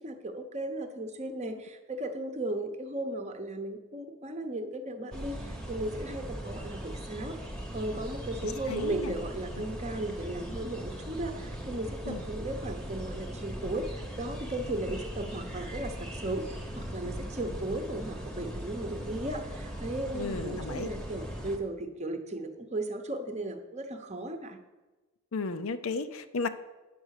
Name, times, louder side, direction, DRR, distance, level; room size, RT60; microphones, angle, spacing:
voice 1, 0.0-7.4 7.7-16.4 16.7-24.6, right 1 dB, 30° right, 6 dB, 0.9 m, -36 dB
sound 1, 5.1-21.6, equal, 5° left, 1.0 m, -39 dB
voice 2, 8.4-9.1 9.6-9.7 12.0-12.2 20.1-20.9 25.3-26.5, left 4 dB, 70° left, 11 dB, 0.6 m, -34 dB
9.3 x 6.1 x 6.5 m, 1.2 s
head